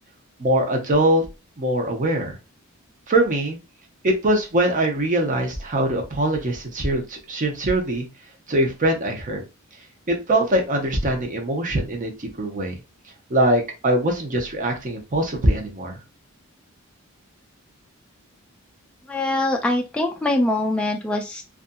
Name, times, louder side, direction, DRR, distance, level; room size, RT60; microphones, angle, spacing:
voice 1, 0.4-1.2 1.6-2.4 3.1-3.6 4.0-8.1 8.5-9.4 10.1-12.7 13.3-16.0, right 1 dB, 40° right, 3 dB, 0.7 m, -22 dB
voice 2, 19.1-21.4, left 1 dB, 5° left, 1 dB, 0.3 m, -23 dB
2.6 x 2.3 x 2.5 m, 0.27 s
head